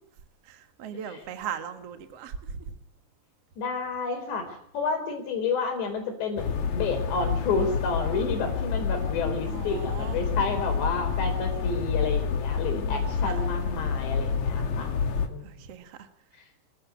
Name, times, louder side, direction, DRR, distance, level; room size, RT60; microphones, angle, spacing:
voice 1, 0.4-2.7 9.4-10.2 12.7-13.4 15.4-16.1, right 7 dB, 60° right, 8 dB, 1.7 m, -39 dB
voice 2, 3.6-14.9 15.3-15.5, left 4 dB, 70° left, 5 dB, 6.4 m, -30 dB
sound 1, 6.4-15.3, left 6 dB, 50° left, 2.5 m, -28 dB
26.0 x 15.0 x 8.4 m, 0.70 s
omnidirectional pair, 5.2 m